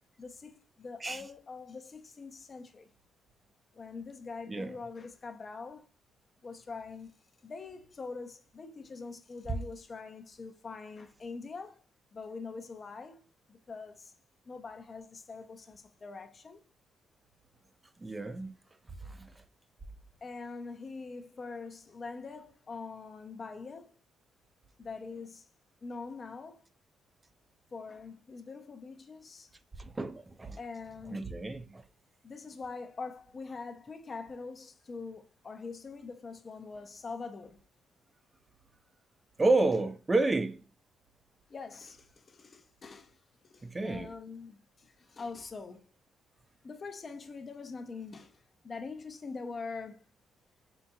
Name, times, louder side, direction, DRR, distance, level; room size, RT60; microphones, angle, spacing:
voice 1, 0.2-2.9 3.7-5.9 6.4-7.1 7.4-11.8 12.1-13.2 13.5-14.1 14.5-16.6 20.2-23.9 24.8-25.5 25.8-26.6 27.7-29.5 30.6-31.3 32.2-37.6 41.5-43.1 43.4-45.8 46.6-48.3 48.6-50.0, left 4 dB, 40° left, 0.6 m, -43 dB
voice 2, 18.0-18.5 19.0-19.3 29.8-30.6 31.1-31.8 39.4-40.6 43.6-44.1, right 2 dB, 20° right, 0.4 m, -30 dB
4.4 x 3.9 x 2.3 m
cardioid pair, 90°, 0 cm